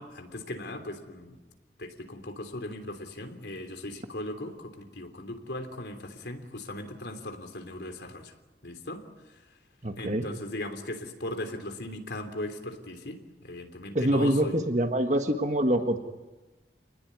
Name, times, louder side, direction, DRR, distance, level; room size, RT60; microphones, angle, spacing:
voice 1, 0.0-1.4 1.8-8.3 8.6-9.0 10.0-14.6, left 1 dB, 80° left, 6 dB, 3.4 m, -38 dB
voice 2, 9.8-10.3 13.9-16.0, right 1 dB, 45° right, 6 dB, 1.7 m, -25 dB
28.5 x 20.0 x 9.9 m, 1.2 s
head